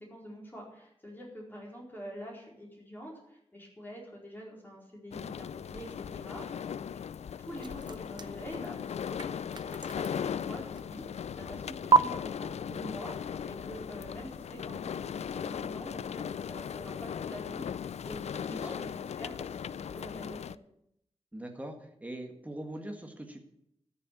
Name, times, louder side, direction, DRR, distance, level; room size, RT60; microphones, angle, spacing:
voice 1, 0.1-7.0 7.4-20.6, equal, 20° left, -3 dB, 4.4 m, -46 dB
sound 1, 5.1-20.6, left 8 dB, 85° left, 0.4 m, -38 dB
sound 2, 7.5-11.2 11.9-12.0, right 5 dB, 45° right, 0.6 m, -31 dB
voice 2, 18.5-18.8 21.3-23.4, right 1 dB, 15° right, 3 dB, 1.7 m, -42 dB
13.5 x 7.0 x 8.5 m, 0.77 s
wide cardioid pair, 115°, 11 cm